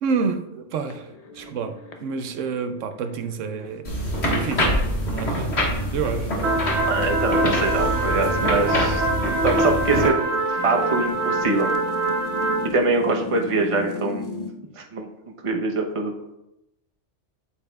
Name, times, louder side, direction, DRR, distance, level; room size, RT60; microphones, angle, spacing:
voice 1, 0.0-3.9 4.2-4.7 5.1-5.5 5.9-6.3, right 5 dB, 85° right, 8 dB, 1.0 m, -28 dB
sound 1, 0.8-14.5, left 3 dB, 40° left, 0.7 m, -39 dB
sound 2, 3.8-10.1, equal, 60° left, 1.8 m, -25 dB
sound 3, 6.4-12.7, right 2 dB, 65° right, 1.2 m, -24 dB
voice 2, 6.9-9.1 9.4-11.7 12.7-14.2 14.8-15.1 15.4-16.1, right 3 dB, 30° right, 2 dB, 0.8 m, -24 dB
8.4 x 8.2 x 2.3 m, 0.90 s
omnidirectional pair, 1.3 m